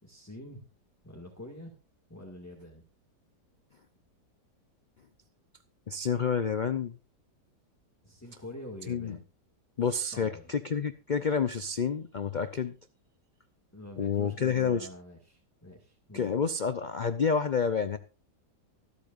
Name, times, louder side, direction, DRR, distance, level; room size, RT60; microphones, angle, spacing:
voice 1, 0.0-0.7 1.0-1.7 2.1-2.8 8.0-9.2 10.1-10.5 13.7-16.3, left 1 dB, 10° left, 0 dB, 1.9 m, -46 dB
voice 2, 5.9-7.0 8.9-9.2 9.8-12.7 14.0-14.9 16.1-18.0, left 6 dB, 80° left, 11 dB, 0.4 m, -29 dB
24.0 x 8.3 x 2.5 m, 0.31 s
omnidirectional pair, 1.8 m